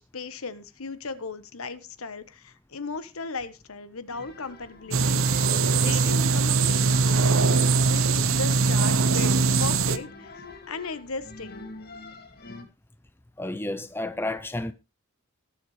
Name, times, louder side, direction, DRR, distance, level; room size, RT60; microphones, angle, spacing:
voice 1, 0.0-10.3 10.7-11.7, left 4 dB, 70° left, 1.2 m, -37 dB
sound 1, 4.1-12.6, left 2 dB, 45° left, 2.2 m, -43 dB
sound 2, 4.9-10.0, right 4 dB, 65° right, 0.8 m, -21 dB
voice 2, 13.4-14.7, left 2 dB, 10° left, 0.5 m, -31 dB
18.5 x 7.0 x 3.3 m
head